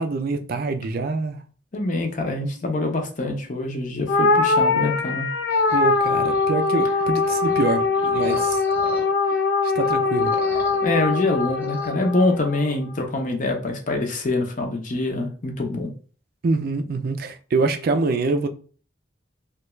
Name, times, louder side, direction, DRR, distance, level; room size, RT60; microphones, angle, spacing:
voice 1, 0.0-1.4 5.7-8.6 9.6-10.3 16.4-18.5, right 3 dB, 55° right, 0.4 m, -25 dB
voice 2, 1.7-5.3 10.8-15.9, left 2 dB, 45° left, 0.7 m, -25 dB
sound 1, 4.1-12.7, left 3 dB, 85° left, 0.5 m, -22 dB
sound 2, 5.5-9.4 9.7-11.9, right 1 dB, 10° right, 0.6 m, -41 dB
3.2 x 2.3 x 3.0 m
head